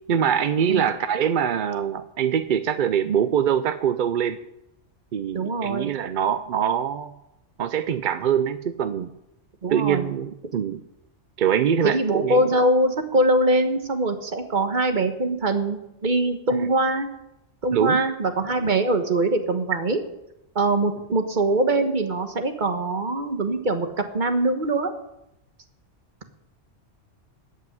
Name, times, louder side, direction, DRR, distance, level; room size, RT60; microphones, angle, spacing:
voice 1, 0.0-4.4 5.1-7.1 7.6-9.1 9.7-10.8 11.4-12.4 17.7-18.0, right 8 dB, 55° right, 11 dB, 0.6 m, -23 dB
voice 2, 5.3-5.9 9.6-10.1 11.8-17.1 17.6-20.0 20.5-24.9, right 2 dB, 40° right, 7 dB, 1.3 m, -23 dB
14.5 x 5.5 x 9.5 m, 0.87 s
omnidirectional pair, 1.3 m